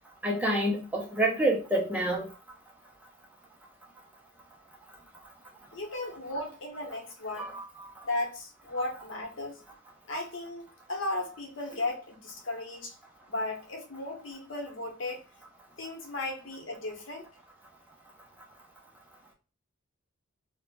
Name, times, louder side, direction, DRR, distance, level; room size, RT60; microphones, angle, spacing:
voice 1, 0.2-2.3 7.4-7.9, right 1 dB, 5° right, 0.4 m, -28 dB
voice 2, 5.7-7.5 8.0-9.6 10.1-13.0 13.3-15.3 15.8-17.3, left 2 dB, 60° left, 0.8 m, -35 dB
2.4 x 2.0 x 3.1 m
head